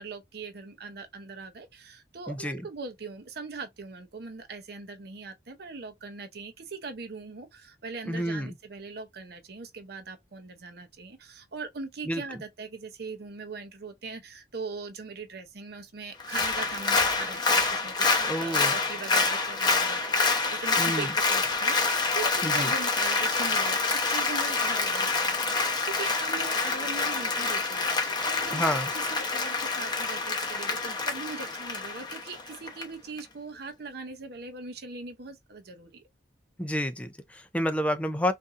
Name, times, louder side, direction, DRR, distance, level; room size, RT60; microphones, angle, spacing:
voice 1, 0.0-17.9 18.2-36.0, right 4 dB, 65° right, 0.7 m, -40 dB
voice 2, 2.3-2.6 8.1-8.5 12.1-12.2 18.3-18.8 20.8-21.1 22.4-22.7 28.5-28.9 36.6-38.3, equal, 10° left, 0.5 m, -29 dB
Applause, 16.2-32.8 33.2-33.3, left 3 dB, 25° left, 0.9 m, -27 dB
3.9 x 2.6 x 2.5 m
head